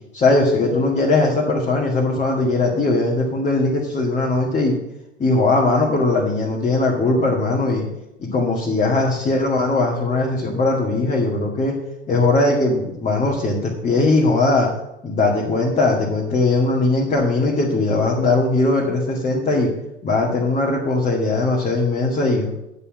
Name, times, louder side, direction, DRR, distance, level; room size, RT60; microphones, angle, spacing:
voice 1, 0.1-4.8 5.2-7.9 8.2-11.7 12.1-14.7 15.0-19.7 20.0-22.5, left 2 dB, 20° left, -4 dB, 2.0 m, -19 dB
9.9 x 5.4 x 7.4 m, 0.89 s
figure-of-eight pair, 80°, 34 cm